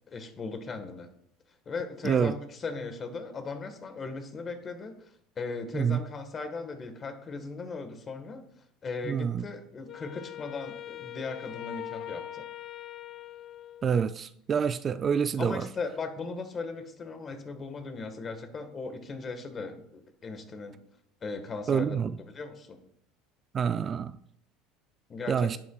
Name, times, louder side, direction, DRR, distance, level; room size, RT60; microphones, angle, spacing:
voice 1, 0.1-1.1 1.6-8.5 8.8-12.5 15.4-20.8 21.2-22.8 25.1-25.5, left 4 dB, 35° left, 1.4 m, -38 dB
voice 2, 9.0-9.4 13.8-15.6 21.7-22.1 23.5-24.1 25.3-25.6, right 7 dB, 35° right, 0.3 m, -27 dB
Wind instrument woodwind instrument, 9.9-14.3, left 11 dB, 50° left, 0.3 m, -42 dB
11.0 x 8.4 x 2.3 m
supercardioid pair, 105°, 0 cm